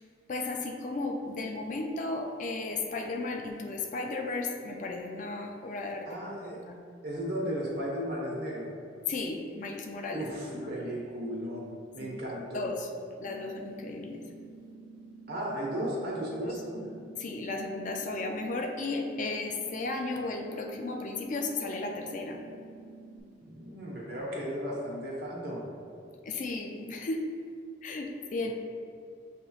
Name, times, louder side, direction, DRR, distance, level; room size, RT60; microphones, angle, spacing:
voice 1, 0.3-6.1 6.4-6.8 9.1-10.7 12.0-12.1 12.5-12.9 13.2-14.2 16.4-16.5 17.2-22.4 26.2-27.2 27.8-28.5, left 3 dB, 45° left, 3 dB, 0.4 m, -34 dB
voice 2, 6.1-6.6 7.0-8.7 10.1-12.7 15.3-16.9 23.4-25.6, equal, 60° right, -3 dB, 1.1 m, -35 dB
sound 1, 13.2-23.2, right 3 dB, 35° right, 0.9 m, -50 dB
7.3 x 2.9 x 2.3 m, 2.3 s
head